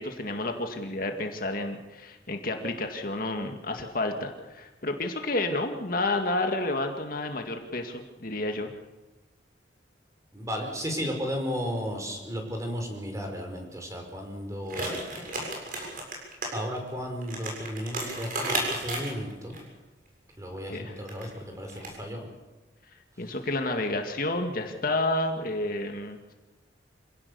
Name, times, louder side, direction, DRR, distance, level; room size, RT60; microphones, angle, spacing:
voice 1, 0.0-8.7 20.7-20.9 23.2-26.2, left 2 dB, 50° left, 4 dB, 2.1 m, -30 dB
voice 2, 10.3-15.0 16.5-19.6 20.4-22.3, equal, 20° right, 3 dB, 5.2 m, -34 dB
sound 1, 14.6-16.5 16.8-16.9 17.2-19.6 21.0-21.3 21.7-21.9, right 2 dB, 50° right, 7.0 m, -33 dB
26.5 x 17.5 x 7.1 m, 1.2 s
head